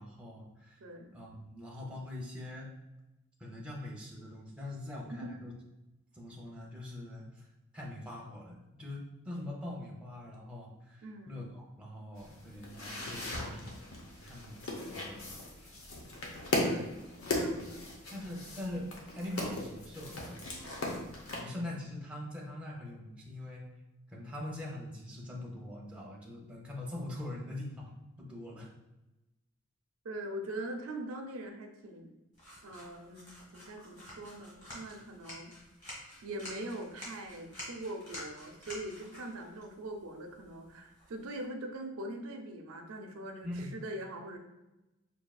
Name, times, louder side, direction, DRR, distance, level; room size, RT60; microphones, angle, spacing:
voice 1, 0.0-0.8 1.1-2.7 3.4-5.5 6.1-7.5 7.7-13.8 14.2-15.8 16.7-16.9 17.5-17.7 18.1-20.7 21.3-23.6 24.1-27.9 28.2-28.7 43.4-43.7, left 1 dB, 5° right, -3 dB, 0.6 m, -43 dB
voice 2, 0.8-1.2 5.1-5.3 11.0-11.4 16.7-18.0 30.0-32.1 32.6-35.5 36.2-44.4, right 1 dB, 85° right, 4 dB, 0.6 m, -42 dB
sound 1, 12.2-21.4, left 1 dB, 80° left, 0.9 m, -38 dB
sound 2, 32.3-41.4, left 1 dB, 35° left, 1.5 m, -49 dB
5.3 x 2.7 x 2.3 m, 1.0 s
head